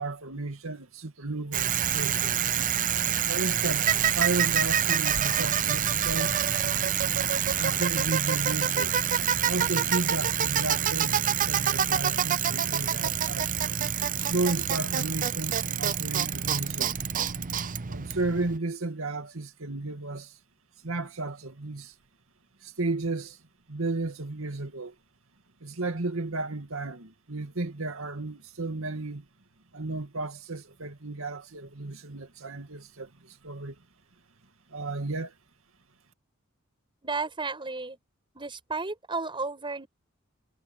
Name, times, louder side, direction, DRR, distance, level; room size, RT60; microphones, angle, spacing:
voice 1, 0.0-2.5 3.3-6.5 7.6-8.9 9.5-13.5 14.2-16.9 17.9-20.3 20.8-21.9 22.6-23.4 23.7-24.9 25.6-29.3 29.7-33.8 34.7-35.3, right 2 dB, 80° right, 2.3 m, -33 dB
Bicycle, 1.5-18.6, right 9 dB, 40° right, 0.6 m, -27 dB
voice 2, 37.0-38.0 38.4-39.9, right 3 dB, 25° right, 5.3 m, -33 dB
head